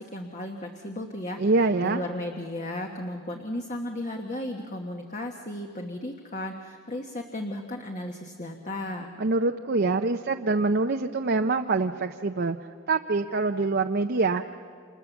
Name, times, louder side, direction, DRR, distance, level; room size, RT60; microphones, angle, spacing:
voice 1, 0.0-1.4 1.8-9.1, left 1 dB, 35° left, 3 dB, 1.3 m, -35 dB
voice 2, 1.4-2.0 9.2-12.6 12.9-14.4, right 3 dB, 45° right, 5 dB, 0.6 m, -25 dB
29.5 x 27.0 x 7.2 m, 2.3 s
head